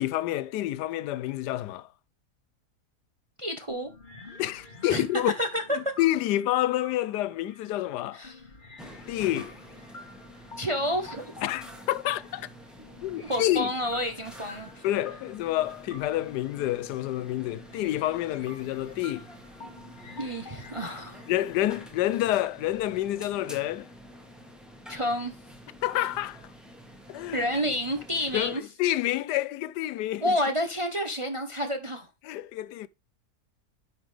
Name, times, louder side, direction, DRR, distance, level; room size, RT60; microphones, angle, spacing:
voice 1, 0.0-1.9 4.4-5.3 5.7-8.2 9.1-9.5 11.4-12.5 13.0-13.7 14.8-19.3 21.3-23.9 25.8-26.4 27.1-27.5 28.3-30.3 32.2-32.9, left 14 dB, 90° left, 1.2 m, -28 dB
voice 2, 3.4-3.9 4.9-5.9 8.1-8.4 10.6-11.3 13.3-14.8 20.2-21.2 24.9-25.4 27.3-28.6 30.2-32.1, equal, 30° right, 0.6 m, -29 dB
sound 1, 3.7-21.9, left 3 dB, 35° left, 1.2 m, -49 dB
sound 2, 8.8-28.6, equal, ahead, 1.2 m, -48 dB
9.3 x 5.6 x 3.2 m
omnidirectional pair, 1.7 m